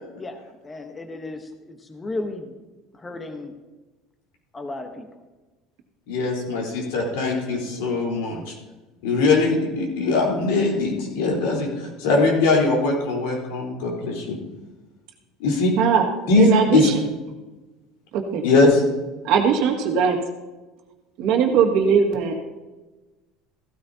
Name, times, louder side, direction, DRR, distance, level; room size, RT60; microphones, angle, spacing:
voice 1, 0.2-2.5 3.0-3.5 4.5-5.1, left 2 dB, 15° left, 6 dB, 1.0 m, -34 dB
voice 2, 6.1-8.5 9.0-14.4 15.4-15.7 16.3-16.9 18.4-18.8, left 3 dB, 85° left, -1 dB, 3.8 m, -21 dB
voice 3, 16.4-17.0 18.1-18.4 19.2-20.2 21.2-22.3, right 7 dB, 60° right, 3 dB, 1.8 m, -19 dB
15.5 x 13.0 x 2.8 m, 1.2 s
cardioid pair, 135°, 0 cm